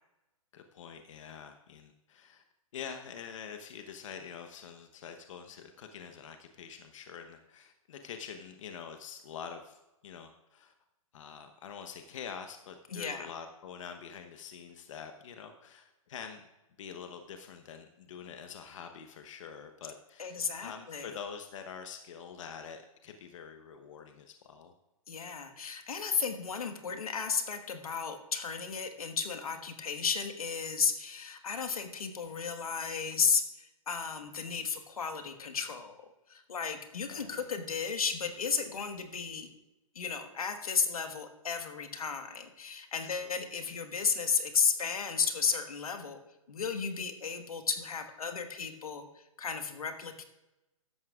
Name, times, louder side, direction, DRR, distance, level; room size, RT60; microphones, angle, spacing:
voice 1, 0.5-2.4 2.7-10.7 11.1-16.4 16.8-24.7 37.1-37.5 43.1-43.3 43.6-43.7, left 7 dB, 60° left, 6 dB, 1.0 m, -46 dB
voice 2, 12.9-13.3 20.2-21.1 25.1-36.0 36.3-39.5 39.9-46.2 46.5-50.2, left 6 dB, 90° left, 7 dB, 1.5 m, -33 dB
14.0 x 11.0 x 2.4 m, 0.97 s
hypercardioid pair, 145°, 18 cm